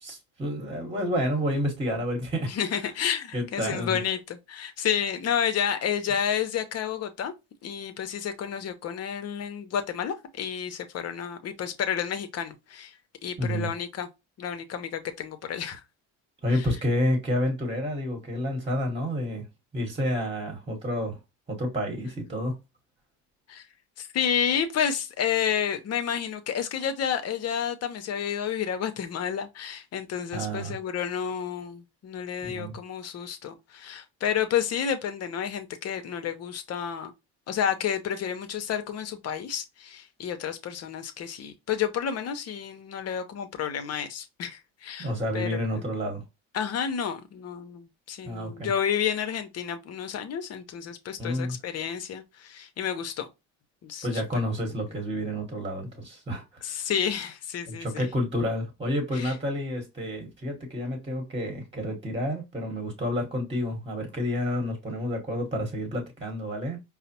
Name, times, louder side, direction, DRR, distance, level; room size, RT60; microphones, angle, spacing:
voice 1, 0.0-2.5 3.3-4.0 13.4-13.7 16.4-19.4 19.7-21.2 21.5-22.5 30.3-30.8 32.4-32.8 45.0-46.2 48.3-48.7 51.2-51.6 54.0-56.6 57.7-66.8, equal, 15° right, 1.2 m, -29 dB
voice 2, 2.5-7.3 7.6-12.9 13.2-14.1 14.4-15.8 16.5-16.7 23.5-23.7 24.0-37.1 37.5-45.9 46.5-53.3 53.8-54.2 56.6-58.1 59.1-59.3, left 8 dB, 50° left, 0.7 m, -30 dB
4.8 x 2.0 x 2.8 m
supercardioid pair, 80°, 33 cm